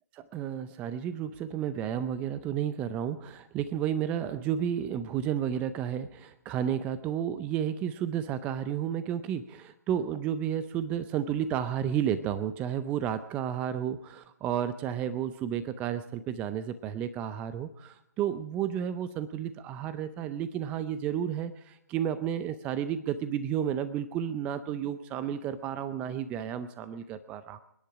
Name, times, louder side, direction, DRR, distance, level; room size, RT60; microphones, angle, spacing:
voice 1, 0.1-27.6, right 9 dB, 15° right, 13 dB, 0.5 m, -32 dB
27.5 x 10.5 x 4.9 m, 0.81 s
figure-of-eight pair, 145°, 10 cm